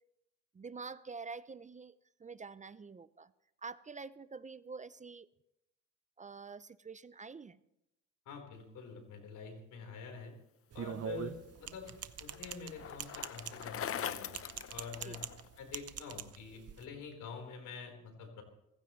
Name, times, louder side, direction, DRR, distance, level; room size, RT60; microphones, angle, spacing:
voice 1, 0.5-3.3 3.6-5.3 6.2-7.6 15.0-15.2, right 4 dB, 25° right, 16 dB, 0.5 m, -47 dB
voice 2, 8.3-10.3 10.7-11.9 12.2-14.3 14.7-15.2 15.6-18.4, left 5 dB, 80° left, 3 dB, 4.2 m, -47 dB
sound 1, 10.7-16.8, right 9 dB, 55° right, 0.9 m, -44 dB
Bicycle, 11.2-15.6, left 9 dB, 50° left, 0.8 m, -43 dB
28.0 x 15.0 x 3.2 m, 0.86 s
cardioid pair, 90°, 30 cm